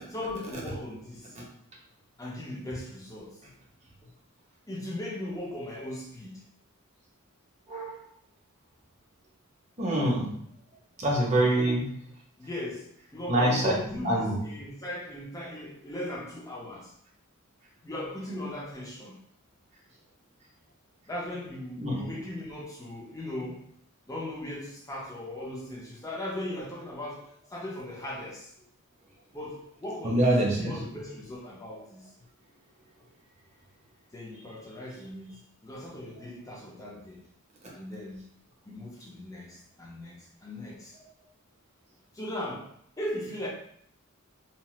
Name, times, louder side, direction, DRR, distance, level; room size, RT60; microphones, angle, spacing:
voice 1, 0.1-1.3 2.2-3.5 4.7-6.4 11.5-11.9 12.4-16.9 17.8-19.2 21.1-23.7 24.1-28.5 29.3-32.1 34.1-37.2 37.7-38.2 38.6-41.0 42.1-42.7 43.0-43.5, left 1 dB, 15° left, -3 dB, 0.6 m, -38 dB
voice 2, 9.8-10.3 11.0-11.8 13.3-13.7 14.0-14.3 21.8-22.0 30.0-30.7, right 1 dB, 30° right, -2 dB, 0.7 m, -24 dB
2.9 x 2.0 x 3.0 m, 0.68 s
head